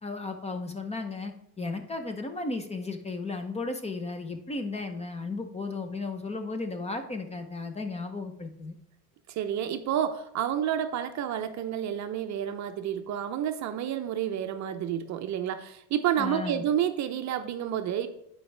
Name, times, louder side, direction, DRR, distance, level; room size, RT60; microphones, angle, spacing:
voice 1, 0.0-8.7 16.2-16.6, left 3 dB, 15° left, 7 dB, 0.7 m, -34 dB
voice 2, 9.3-18.1, right 10 dB, 45° right, 8 dB, 0.6 m, -30 dB
10.5 x 4.7 x 3.3 m, 0.75 s
supercardioid pair, 110°, 41 cm